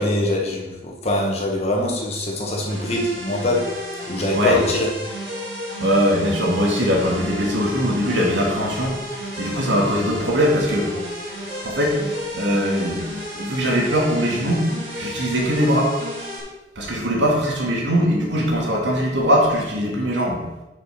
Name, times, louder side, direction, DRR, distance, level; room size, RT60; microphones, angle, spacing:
voice 1, 0.0-3.6 4.1-4.9, left 1 dB, 35° left, -1 dB, 1.7 m, -23 dB
sound 1, 2.7-16.4, equal, 60° right, 3.2 m, -32 dB
voice 2, 5.8-9.0 9.4-10.9 11.6-12.0 12.3-13.1 13.3-14.7 15.0-15.9 16.8-20.4, equal, 80° right, -2 dB, 2.5 m, -21 dB
6.9 x 6.2 x 6.0 m, 1.0 s
head